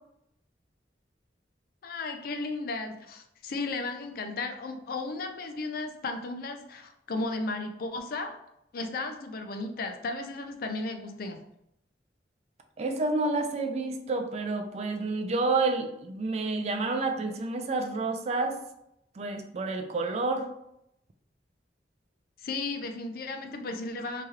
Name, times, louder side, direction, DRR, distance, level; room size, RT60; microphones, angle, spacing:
voice 1, 1.8-8.4 8.7-11.4 22.4-24.2, left 3 dB, 55° left, 5 dB, 0.4 m, -34 dB
voice 2, 12.8-18.6 19.1-20.5, right 3 dB, 35° right, 5 dB, 0.3 m, -29 dB
3.1 x 2.8 x 2.3 m, 0.80 s
head